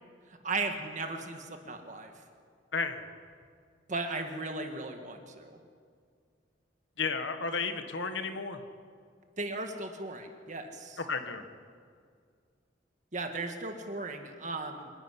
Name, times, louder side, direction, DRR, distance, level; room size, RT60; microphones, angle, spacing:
voice 1, 0.4-2.1 3.9-5.6 9.4-11.0 13.1-14.9, right 3 dB, 40° right, 4 dB, 1.6 m, -36 dB
voice 2, 2.7-3.0 7.0-8.6 11.1-11.4, left 4 dB, 75° left, 7 dB, 1.5 m, -33 dB
25.5 x 10.5 x 10.0 m, 2.1 s
head